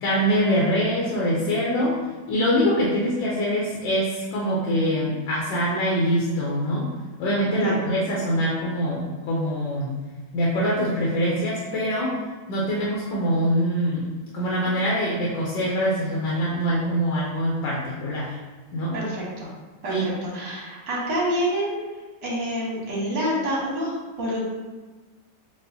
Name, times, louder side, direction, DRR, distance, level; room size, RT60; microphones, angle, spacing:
voice 1, 0.0-2.0 2.3-6.9 7.2-9.9 10.3-12.2 12.5-14.1 14.3-18.4 18.7-19.0 19.9-20.1, equal, 90° left, -4 dB, 1.4 m, -24 dB
voice 2, 7.5-7.8 18.9-19.5 19.8-21.8 22.2-24.4, right 1 dB, 80° right, -5 dB, 1.9 m, -27 dB
6.8 x 2.4 x 2.7 m, 1.3 s
omnidirectional pair, 1.9 m